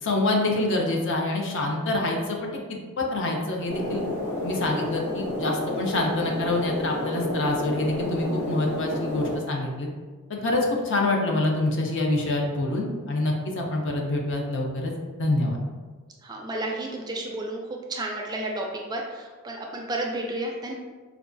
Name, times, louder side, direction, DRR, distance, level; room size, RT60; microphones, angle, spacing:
voice 1, 0.0-4.0 4.4-9.9 10.3-14.9 15.2-15.6, left 2 dB, 60° left, 0 dB, 0.6 m, -26 dB
sound 1, 3.7-9.4, left 1 dB, 80° left, 1.4 m, -30 dB
voice 2, 16.2-17.6 17.9-20.7, right 1 dB, 20° right, 0 dB, 0.3 m, -31 dB
4.6 x 2.3 x 2.5 m, 1.4 s
head